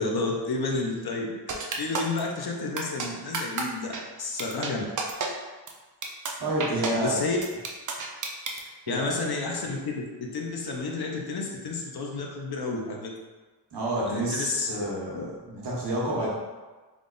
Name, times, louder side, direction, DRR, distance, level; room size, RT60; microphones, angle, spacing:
voice 1, 0.0-3.9 4.2-4.8 6.9-7.4 8.9-13.1 14.1-14.7 15.1-15.3, left 3 dB, 60° left, 0 dB, 0.6 m, -31 dB
sound 1, 1.5-2.2 2.8-3.1 3.3-3.6 3.9-4.0 4.4-4.7 5.0-5.3 5.7-5.8 6.0-6.3 6.6-6.9 7.4-8.6, right 4 dB, 45° right, 0.5 m, -30 dB
voice 2, 6.4-7.2 8.9-9.2 13.7-16.3, right 1 dB, 65° right, -5 dB, 1.1 m, -29 dB
3.6 x 2.3 x 3.8 m, 1.3 s
wide cardioid pair, 170°, 44 cm